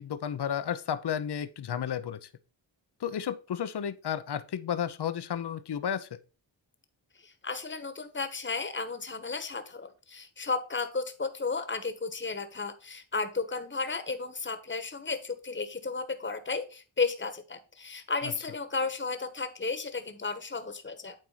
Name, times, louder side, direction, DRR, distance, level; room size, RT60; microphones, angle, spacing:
voice 1, 0.0-2.3 3.0-6.1 18.2-18.3, left 8 dB, 55° left, 0.8 m, -32 dB
voice 2, 7.1-21.1, left 4 dB, 25° left, 1.4 m, -33 dB
9.1 x 3.6 x 5.7 m
cardioid pair, 45°, 47 cm